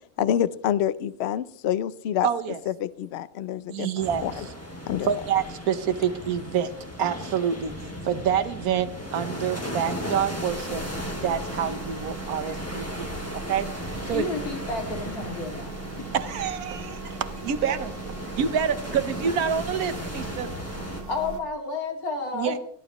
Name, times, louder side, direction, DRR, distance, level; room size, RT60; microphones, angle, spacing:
voice 1, 0.2-2.3 2.7-4.4 4.9-5.1, left 10 dB, 60° left, 17 dB, 0.8 m, -27 dB
voice 2, 2.2-2.6 3.7-4.3 5.1-7.8 8.0-10.8 11.2-14.3 16.1-17.9 18.4-20.5 22.3-22.6, right 8 dB, 80° right, 10 dB, 1.4 m, -27 dB
sound 1, 4.0-21.0, left 1 dB, 10° left, 2.2 m, -36 dB
sound 2, 10.5-21.4, right 5 dB, 40° right, 1.2 m, -39 dB
voice 3, 14.1-15.7 21.1-22.6, left 3 dB, 85° left, 2 dB, 2.9 m, -31 dB
20.5 x 14.0 x 3.0 m, 0.69 s
omnidirectional pair, 1.5 m